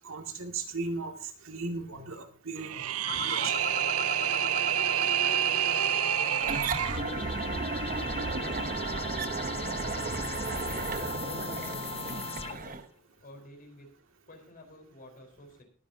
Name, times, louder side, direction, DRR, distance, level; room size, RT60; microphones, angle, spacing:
voice 1, 0.0-2.8 3.1-3.8, right 3 dB, 70° right, 4 dB, 2.3 m, -37 dB
sound 1, 2.6-7.0, right 11 dB, 85° right, 0.5 m, -28 dB
sound 2, 3.1-12.8, left 5 dB, 30° left, 0.7 m, -39 dB
voice 2, 5.2-6.4 6.9-9.1 9.4-10.0 10.6-12.8 13.2-13.9 14.3-15.6, left 1 dB, 45° left, 4 dB, 4.4 m, -50 dB
sound 3, 6.4-12.8, right 4 dB, 40° right, 1.0 m, -34 dB
21.0 x 10.0 x 2.8 m, 0.42 s
head